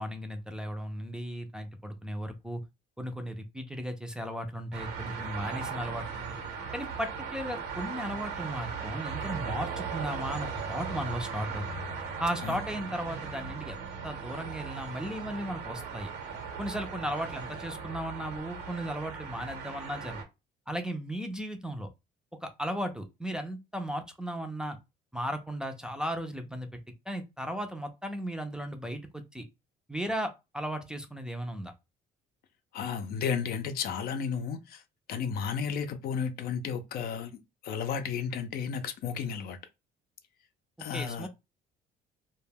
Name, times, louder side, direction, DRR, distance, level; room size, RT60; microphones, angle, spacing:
voice 1, 0.0-2.6 3.0-6.4 6.7-11.9 12.2-13.8 14.0-16.1 16.6-20.2 20.7-21.9 22.4-24.8 25.1-26.8 27.1-29.4 29.9-31.7 40.8-41.3, equal, 5° right, 0.4 m, -36 dB
sound 1, 4.7-20.2, right 6 dB, 85° right, 0.9 m, -38 dB
voice 2, 32.7-34.8 35.1-37.3 37.6-39.6 40.8-41.3, left 6 dB, 65° left, 0.5 m, -33 dB
2.2 x 2.1 x 3.3 m
cardioid pair, 110°, 17 cm